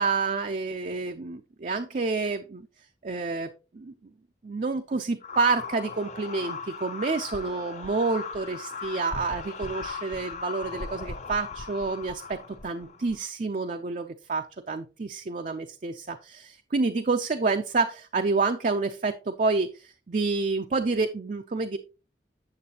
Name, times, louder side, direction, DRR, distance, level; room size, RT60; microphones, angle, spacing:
voice 1, 0.0-2.6 3.0-3.9 4.4-21.8, right 4 dB, 45° right, 6 dB, 0.5 m, -28 dB
sound 1, 5.2-13.3, left 5 dB, 40° left, 0.6 m, -38 dB
8.6 x 7.1 x 2.9 m, 0.31 s
head